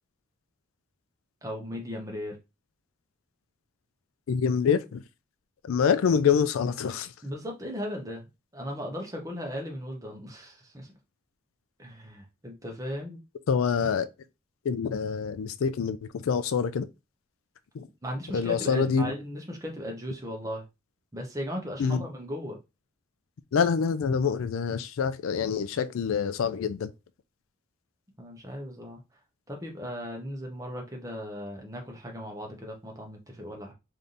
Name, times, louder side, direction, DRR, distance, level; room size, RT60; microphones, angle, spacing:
voice 1, 1.4-2.4 7.2-10.9 11.8-13.2 18.0-20.6 21.1-22.6 28.2-29.0 29.5-33.7, equal, 15° right, 0.9 m, -37 dB
voice 2, 4.3-5.0 5.6-7.1 13.5-14.1 14.6-16.9 17.7-17.9 18.3-19.1 21.8-22.0 23.5-26.9, left 6 dB, 85° left, 0.4 m, -26 dB
3.3 x 2.7 x 3.9 m
head